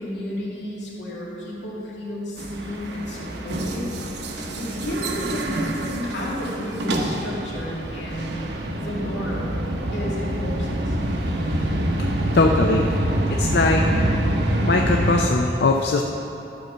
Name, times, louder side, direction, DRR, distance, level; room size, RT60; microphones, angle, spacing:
voice 1, 0.0-3.9 4.3-9.6 9.9-11.0, left 1 dB, 85° left, -6 dB, 2.3 m, -32 dB
sound 1, 2.4-15.3, right 1 dB, 70° right, 0.9 m, -26 dB
voice 2, 11.3-11.7 12.3-12.9 13.4-13.8 14.7-16.0, left 3 dB, 65° left, 2 dB, 0.5 m, -21 dB
11.5 x 4.4 x 6.7 m, 2.9 s
head